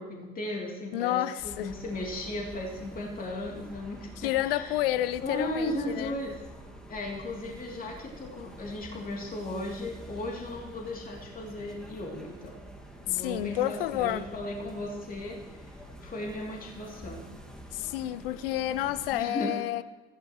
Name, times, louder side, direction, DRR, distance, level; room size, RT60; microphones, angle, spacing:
voice 1, 0.0-4.8 5.2-6.3 6.9-12.5 13.1-17.3 19.1-19.5, left 1 dB, 30° left, 3.0 m, -36 dB
voice 2, 0.9-1.7 4.2-6.1 13.1-14.3 17.7-19.8, left 14 dB, 65° left, 0.7 m, -30 dB
sound 1, 1.4-19.2, equal, ahead, 2.0 m, -47 dB
24.0 x 15.5 x 3.1 m
figure-of-eight pair, 55°, 30 cm